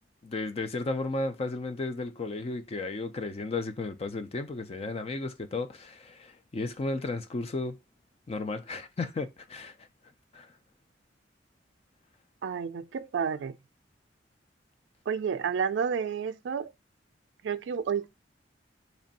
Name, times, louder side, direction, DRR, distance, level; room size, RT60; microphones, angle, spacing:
voice 1, 0.2-7.8 8.3-9.7 10.3-10.5, left 3 dB, 35° left, 0.4 m, -34 dB
voice 2, 12.4-13.6 15.1-16.7 17.4-18.1, right 6 dB, 75° right, 0.3 m, -30 dB
3.1 x 2.6 x 3.9 m
head